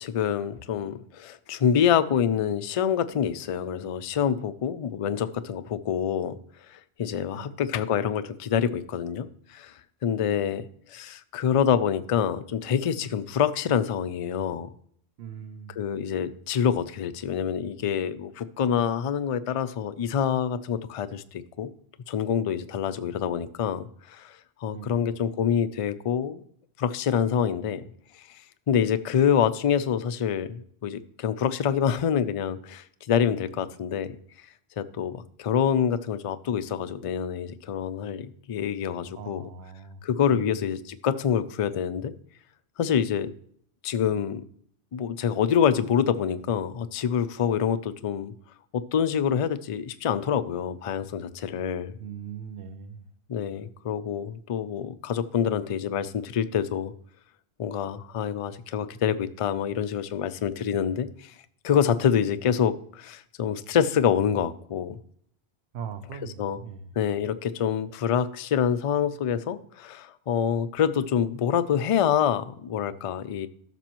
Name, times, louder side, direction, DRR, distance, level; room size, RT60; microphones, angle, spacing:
voice 1, 0.0-6.4 6.7-9.7 10.0-14.7 15.8-21.7 22.1-26.4 26.8-27.8 28.3-28.4 28.7-34.1 34.8-39.5 40.0-42.1 42.8-43.3 43.8-44.4 44.9-48.3 48.7-52.0 53.3-56.9 57.6-61.3 61.6-65.0 66.4-66.6 67.0-73.5, left 8 dB, 50° left, 12 dB, 0.4 m, -26 dB
voice 2, 15.2-15.8 24.7-25.1 39.2-40.0 40.3-40.6 52.0-53.0 65.7-66.9, right 7 dB, 75° right, 9 dB, 1.0 m, -40 dB
13.5 x 6.1 x 3.0 m, 0.63 s
omnidirectional pair, 1.1 m